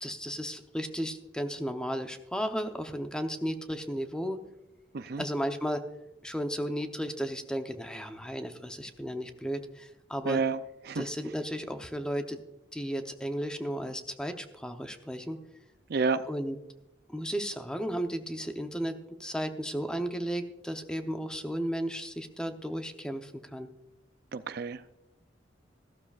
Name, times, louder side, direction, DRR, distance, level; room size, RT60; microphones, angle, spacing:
voice 1, 0.0-4.4 5.2-5.8 6.2-10.4 10.9-12.4 12.7-15.4 16.3-16.6 17.1-23.7, equal, 5° left, 6 dB, 0.7 m, -34 dB
voice 2, 10.2-10.6 10.8-11.0 15.9-16.2 24.3-24.9, right 4 dB, 55° right, 12 dB, 0.4 m, -29 dB
14.5 x 12.5 x 2.4 m, 0.90 s
head